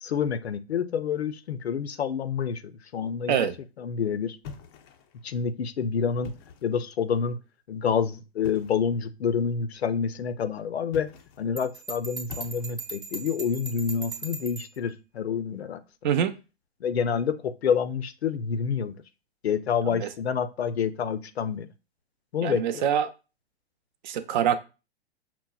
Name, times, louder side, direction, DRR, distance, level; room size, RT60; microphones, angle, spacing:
voice 1, 0.0-3.5 3.8-4.4 5.2-6.3 6.6-7.4 7.7-11.1 11.4-15.8 16.8-19.0 19.4-21.7 22.3-22.8, left 7 dB, 85° left, 0.5 m, -28 dB
sound 1, 4.4-5.2 6.1-6.8 8.4-8.9 10.8-11.5 12.3-13.0, left 6 dB, 25° left, 0.3 m, -44 dB
Bell, 11.6-14.8, right 4 dB, 15° right, 0.7 m, -39 dB
voice 2, 22.4-23.1 24.0-24.6, right 9 dB, 50° right, 0.4 m, -24 dB
5.8 x 2.0 x 2.3 m
figure-of-eight pair, 110°, 31 cm